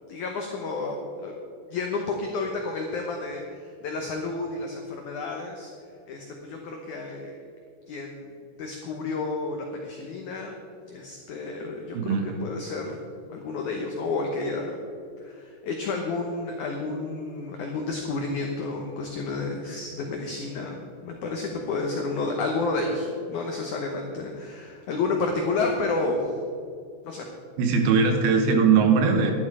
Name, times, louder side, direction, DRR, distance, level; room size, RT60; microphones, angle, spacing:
voice 1, 0.0-1.3 1.7-5.7 6.1-7.3 7.9-12.2 12.4-13.0 13.3-14.8 15.2-26.3 27.0-27.2, left 3 dB, 90° left, 2 dB, 1.7 m, -31 dB
voice 2, 11.9-12.4 27.6-29.3, right 5 dB, 75° right, 4 dB, 2.8 m, -20 dB
11.5 x 11.0 x 4.8 m, 2.4 s
omnidirectional pair, 5.0 m